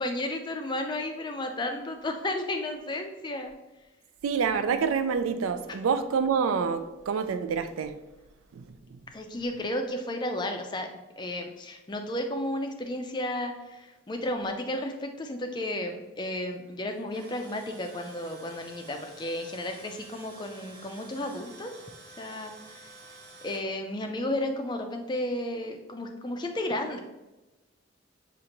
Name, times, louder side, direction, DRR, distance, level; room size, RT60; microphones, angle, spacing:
voice 1, 0.0-3.5 9.1-10.9 11.2-21.7 22.2-22.9 23.4-27.0, left 1 dB, 20° left, 0.4 m, -33 dB
voice 2, 4.2-8.0 8.5-9.0, right 6 dB, 90° right, 0.4 m, -27 dB
Tools, 16.9-23.6, right 3 dB, 50° right, 0.9 m, -50 dB
6.4 x 2.5 x 2.9 m
head